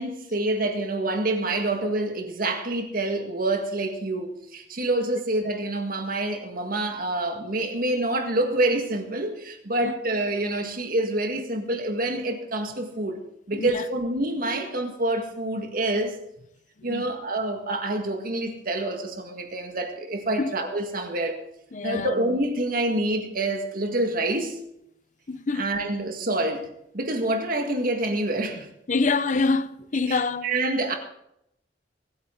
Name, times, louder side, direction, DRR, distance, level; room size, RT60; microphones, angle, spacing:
voice 1, 0.0-13.2 13.5-16.2 16.8-21.4 21.8-24.6 25.5-26.7 26.9-28.7 30.1-30.9, right 2 dB, 55° right, 1.8 m, -27 dB
voice 2, 13.5-13.9 16.9-17.1 20.4-20.5 21.7-22.1 25.3-25.7 28.9-30.5, left 3 dB, 45° left, 0.6 m, -26 dB
24.0 x 9.3 x 3.9 m
head